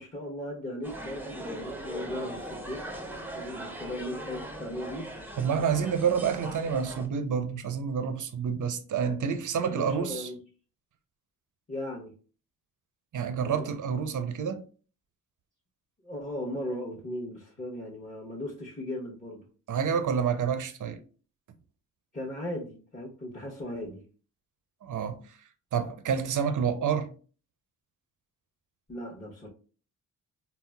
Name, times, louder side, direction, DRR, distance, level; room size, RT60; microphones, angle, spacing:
voice 1, 0.0-2.9 3.3-5.1 9.6-10.4 11.7-12.1 13.4-13.7 16.0-19.4 22.1-24.0 28.9-29.5, left 1 dB, 20° left, 0.9 m, -37 dB
sound 1, 0.8-7.1, right 1 dB, 5° right, 0.6 m, -40 dB
voice 2, 5.4-10.3 13.1-14.6 19.7-21.0 24.8-25.4 25.7-27.1, right 7 dB, 50° right, 0.6 m, -28 dB
3.9 x 2.0 x 2.2 m
supercardioid pair, 50°, 38 cm